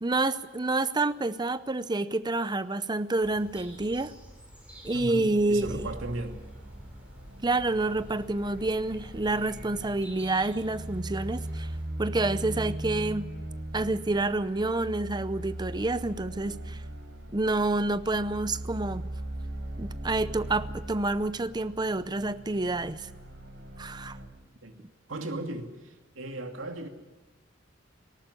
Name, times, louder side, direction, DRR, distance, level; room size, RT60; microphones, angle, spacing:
voice 1, 0.0-4.1 4.8-5.9 7.4-11.7 12.0-13.3 13.7-16.8 17.3-19.1 19.8-23.1 23.8-24.2, right 2 dB, 20° right, 0.7 m, -28 dB
sound 1, 3.2-11.8, equal, 5° right, 5.8 m, -49 dB
voice 2, 4.9-6.4 12.6-12.8 24.6-24.8 25.1-26.9, right 2 dB, 90° right, 2.5 m, -37 dB
sound 2, 5.6-24.3, right 1 dB, 70° right, 4.0 m, -40 dB
19.0 x 18.0 x 9.9 m
head